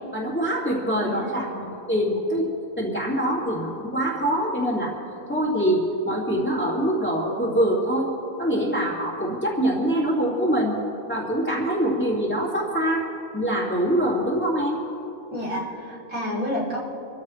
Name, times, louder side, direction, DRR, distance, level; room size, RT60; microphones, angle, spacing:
voice 1, 0.1-2.5 2.8-4.9 5.3-8.1 8.4-10.8 11.1-13.1 13.3-14.8, right 1 dB, 5° left, -8 dB, 2.3 m, -24 dB
voice 2, 1.0-1.3 15.3-16.8, equal, 75° right, -6 dB, 3.8 m, -29 dB
27.0 x 14.5 x 3.2 m, 2.8 s
omnidirectional pair, 1.5 m